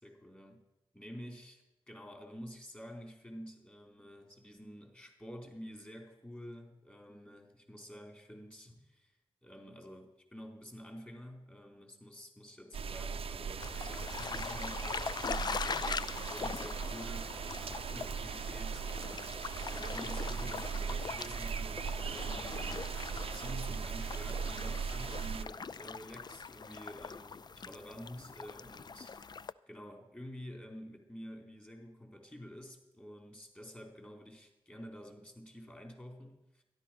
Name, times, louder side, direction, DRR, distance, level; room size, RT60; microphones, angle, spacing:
voice 1, 0.0-0.6 0.9-9.1 9.4-17.3 17.9-22.9 23.3-36.6, equal, 15° left, 2 dB, 4.1 m, -49 dB
sound 1, 12.7-25.4, right 6 dB, 70° right, 0.6 m, -39 dB
sound 2, 13.6-29.5, left 5 dB, 45° left, 0.4 m, -42 dB
13.0 x 11.5 x 6.0 m, 0.96 s
cardioid pair, 55°, 10 cm